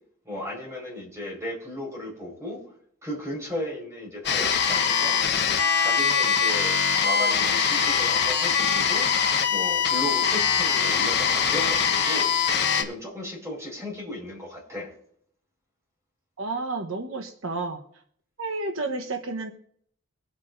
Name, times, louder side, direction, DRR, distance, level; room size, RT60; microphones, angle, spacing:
voice 1, 0.2-2.6 3.0-5.2 5.8-6.7 7.0-9.1 9.5-12.3 12.7-14.9, left 1 dB, 15° right, -2 dB, 5.0 m, -35 dB
sound 1, 4.2-12.8, left 6 dB, 50° left, 1.2 m, -23 dB
voice 2, 16.4-17.8 18.4-19.5, right 3 dB, 75° right, 5 dB, 1.1 m, -31 dB
24.0 x 8.3 x 2.7 m, 0.63 s
head